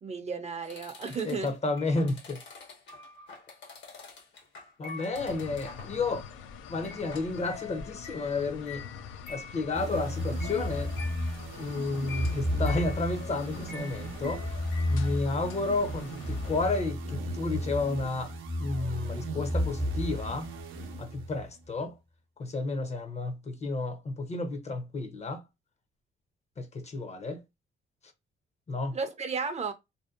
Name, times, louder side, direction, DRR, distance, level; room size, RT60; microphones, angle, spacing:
voice 1, 0.0-1.5 28.9-29.7, right 5 dB, 35° right, 0.5 m, -33 dB
sound 1, 0.6-6.0 6.3-6.6 6.8-15.1, left 5 dB, 65° left, 1.0 m, -47 dB
voice 2, 1.3-2.4 4.8-6.3 6.7-8.8 9.3-10.9 11.6-14.4 14.9-18.3 18.6-20.5 21.0-22.0 22.4-25.4 26.6-27.4 28.7-29.0, left 3 dB, 35° left, 0.6 m, -31 dB
sound 2, 5.1-16.8, left 6 dB, 85° left, 0.4 m, -46 dB
sound 3, 9.7-21.5, equal, 85° right, 0.6 m, -33 dB
2.6 x 2.1 x 2.4 m
cardioid pair, 90°, 20 cm